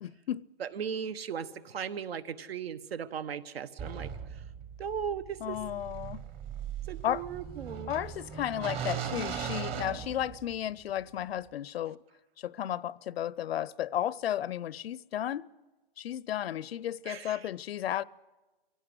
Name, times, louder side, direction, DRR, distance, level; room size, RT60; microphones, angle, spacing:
voice 1, 0.0-0.5 5.4-6.2 7.0-7.3 7.9-12.0 12.4-15.5 16.0-18.0, left 11 dB, 80° left, 0.7 m, -33 dB
voice 2, 0.6-4.1 4.8-5.6 6.9-7.9 17.1-17.5, right 7 dB, 80° right, 1.4 m, -37 dB
sound 1, 3.8-10.7, right 8 dB, 20° right, 0.9 m, -39 dB
25.0 x 16.5 x 8.0 m
hypercardioid pair, 155°, 30 cm